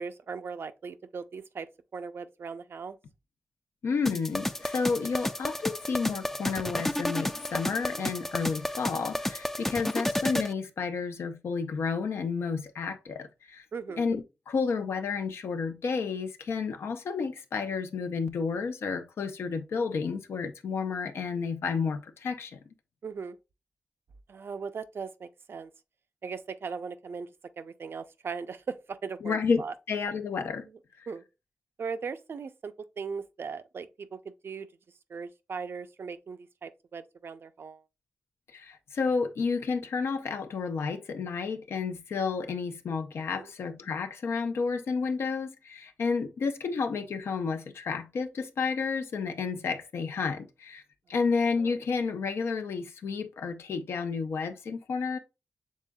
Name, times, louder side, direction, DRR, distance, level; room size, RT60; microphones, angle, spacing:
voice 1, 0.0-3.0 13.7-14.1 23.0-23.4 24.3-25.7 26.2-27.3 27.6-29.7 31.1-31.2 31.8-34.7 35.1-37.8 43.4-43.5, right 5 dB, 70° right, 0.5 m, -38 dB
voice 2, 3.8-13.6 14.0-22.6 29.2-30.7 31.0-31.1 38.5-50.8 51.1-55.2, left 5 dB, 90° left, 0.6 m, -31 dB
sound 1, 4.1-10.5, left 1 dB, 10° left, 0.3 m, -31 dB
6.4 x 3.6 x 2.2 m
cardioid pair, 55°, 4 cm